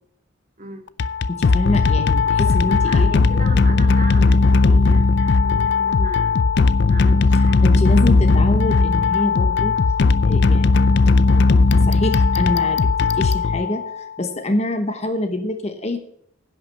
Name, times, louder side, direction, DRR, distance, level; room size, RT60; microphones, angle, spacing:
sound 1, 0.9-14.1, left 4 dB, 55° left, 0.4 m, -17 dB
voice 1, 1.3-3.1 7.6-9.7 10.3-10.9 11.3-16.0, left 1 dB, 30° left, 8 dB, 1.0 m, -25 dB
voice 2, 2.4-6.3 6.8-7.8 14.2-14.4, right 2 dB, 40° right, 3 dB, 2.2 m, -36 dB
11.0 x 5.8 x 7.7 m, 0.69 s
head